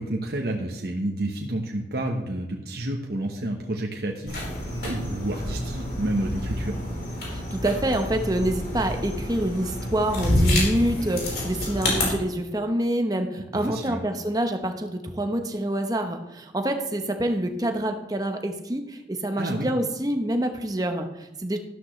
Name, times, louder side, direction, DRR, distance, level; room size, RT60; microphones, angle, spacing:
voice 1, 0.0-6.8 13.5-14.0 19.4-19.7, right 1 dB, 60° right, 0 dB, 1.1 m, -30 dB
sound 1, 4.3-12.0, left 1 dB, 60° left, 4.5 m, -28 dB
voice 2, 7.3-21.6, right 1 dB, 20° right, 5 dB, 0.9 m, -26 dB
12.5 x 12.5 x 3.2 m, 0.99 s
head